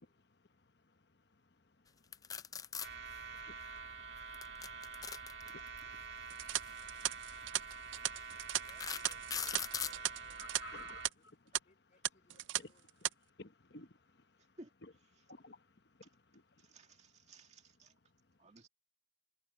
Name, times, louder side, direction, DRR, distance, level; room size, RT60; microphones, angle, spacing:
voice 1, 0.0-8.7 10.4-11.7 12.3-17.3 18.1-18.5, left 2 dB, 65° left, 1.1 m, -60 dB
sound 1, 2.1-2.9 4.3-5.8 6.9-7.1 7.7-7.8 8.4-10.0, left 7 dB, 20° left, 0.4 m, -40 dB
sound 2, 2.8-11.1, right 4 dB, 65° right, 1.9 m, -47 dB
sound 3, 6.3-10.6 10.9-11.1 11.5-11.6 12.0-12.6 12.9-13.1, right 14 dB, 90° right, 0.4 m, -37 dB
voice 2, 8.5-10.7 11.1-11.3 11.6-13.1, left 2 dB, 45° left, 5.2 m, -69 dB
voice 3, 14.4-14.7 16.6-17.9 18.4-18.7, right 2 dB, 40° right, 2.1 m, -57 dB
head